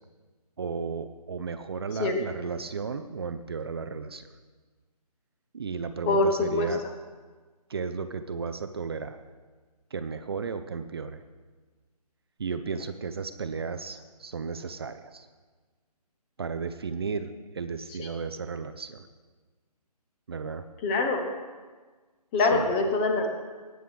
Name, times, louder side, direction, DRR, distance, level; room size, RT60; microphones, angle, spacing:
voice 1, 0.6-4.3 5.5-6.9 7.7-9.2 9.9-11.2 12.4-15.3 16.4-19.1 20.3-20.7 22.4-22.7, right 5 dB, 40° right, 9 dB, 0.6 m, -34 dB
voice 2, 6.1-6.7 18.0-18.1 20.8-21.3 22.3-23.3, left 3 dB, 15° left, 4 dB, 0.8 m, -24 dB
19.0 x 7.8 x 3.5 m, 1.4 s
figure-of-eight pair, 145°, 21 cm